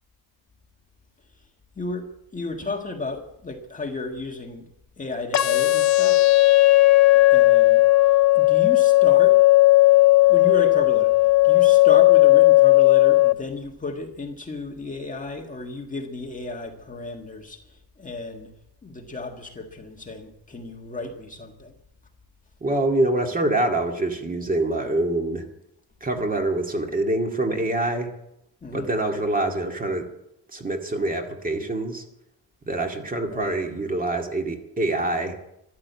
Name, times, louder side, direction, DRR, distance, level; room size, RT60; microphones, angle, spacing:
voice 1, 1.7-4.6 5.0-6.3 7.3-7.8 8.3-9.4 10.3-18.5 18.8-21.7 28.6-28.9 33.3-33.6, left 3 dB, 20° left, 2 dB, 1.6 m, -33 dB
sound 1, 5.3-13.3, left 18 dB, 45° left, 0.5 m, -15 dB
voice 2, 22.6-25.5 26.0-28.1 28.7-30.1 30.5-32.0 32.7-35.4, right 2 dB, 20° right, 3 dB, 2.1 m, -25 dB
14.0 x 12.0 x 8.2 m, 0.80 s
cardioid pair, 150°, 39 cm